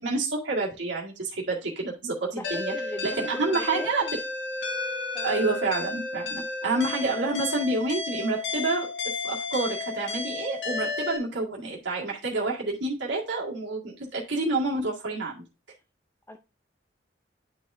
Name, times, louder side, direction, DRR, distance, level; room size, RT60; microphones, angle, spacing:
voice 1, 0.0-2.7 3.0-4.0 5.2-8.9 9.2-15.4, right 3 dB, 75° right, -4 dB, 1.9 m, -28 dB
voice 2, 2.3-4.1 5.1-5.4 16.3-16.4, left 1 dB, 15° left, 5 dB, 0.5 m, -40 dB
sound 1, 2.4-11.2, left 3 dB, 75° left, 2.0 m, -32 dB
11.0 x 4.8 x 2.6 m, 0.29 s
head